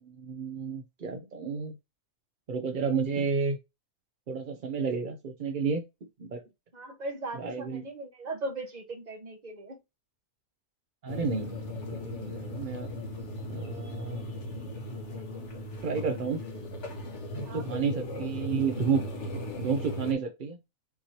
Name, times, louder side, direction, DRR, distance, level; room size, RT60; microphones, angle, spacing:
voice 1, 0.0-1.7 2.5-3.6 4.3-5.8 6.2-6.4 7.3-7.8 11.0-12.9 13.5-14.2 15.8-16.4 17.5-19.1 19.6-20.6, right 5 dB, 60° right, 0.5 m, -31 dB
voice 2, 6.7-9.8 17.4-18.1, right 2 dB, 30° right, 1.0 m, -38 dB
sound 1, 11.1-20.1, left 1 dB, 50° left, 1.3 m, -37 dB
5.8 x 3.0 x 2.8 m
omnidirectional pair, 1.7 m